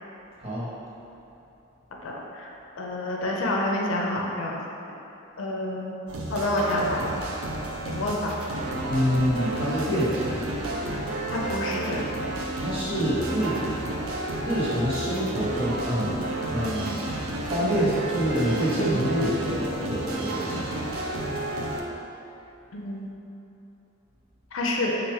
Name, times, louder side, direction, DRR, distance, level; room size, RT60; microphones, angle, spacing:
voice 1, 2.0-2.5 2.8-4.6 5.4-5.9 6.3-7.1 7.8-8.3 11.3-12.0 22.7-23.1 24.5-25.0, left 1 dB, 70° left, -2 dB, 0.5 m, -28 dB
sound 1, 6.1-21.8, right 1 dB, 90° right, 0.5 m, -31 dB
voice 2, 8.9-10.6 12.5-13.6 13.9-14.0 14.4-16.2 16.5-17.0 17.5-20.7, equal, 30° right, -10 dB, 1.3 m, -26 dB
4.2 x 2.5 x 4.7 m, 3.0 s
head